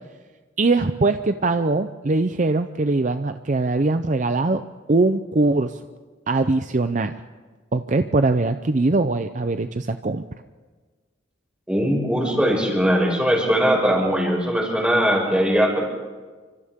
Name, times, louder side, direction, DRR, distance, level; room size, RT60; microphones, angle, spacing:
voice 1, 0.6-4.6 4.9-5.8 6.3-7.1 7.7-10.2, right 3 dB, 40° right, 9 dB, 0.6 m, -21 dB
voice 2, 11.7-15.8, equal, 5° right, -1 dB, 5.8 m, -20 dB
29.5 x 25.5 x 3.7 m, 1.4 s
head